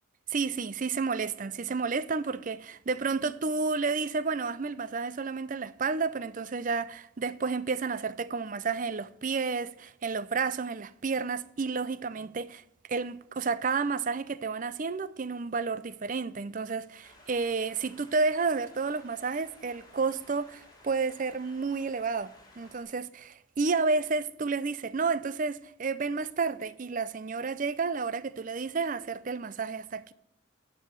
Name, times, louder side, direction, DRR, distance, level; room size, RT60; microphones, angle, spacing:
voice 1, 0.3-12.6 12.9-30.1, right 4 dB, 40° right, 0.5 m, -31 dB
sound 1, 17.0-22.8, left 1 dB, 20° left, 2.2 m, -56 dB
11.5 x 5.6 x 6.4 m
head